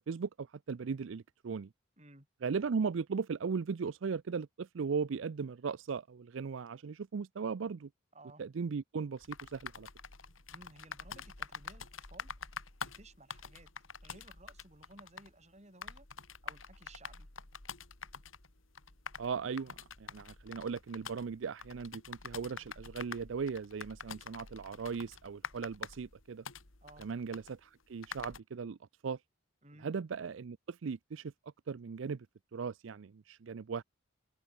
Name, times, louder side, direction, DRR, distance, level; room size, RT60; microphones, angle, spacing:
voice 1, 0.0-1.7 2.4-7.9 8.4-9.9 19.2-26.4 27.0-28.8 29.0-29.2 29.8-31.3 31.7-32.3 32.5-33.8, right 5 dB, 70° right, 0.5 m, -38 dB
voice 2, 2.0-2.3 8.1-8.4 10.5-12.3 12.8-13.7 14.0-16.1 16.4-17.3 26.8-27.1 29.6-29.9, right 2 dB, 35° right, 5.8 m, -57 dB
sound 1, 9.2-28.4, left 6 dB, 85° left, 3.1 m, -47 dB
head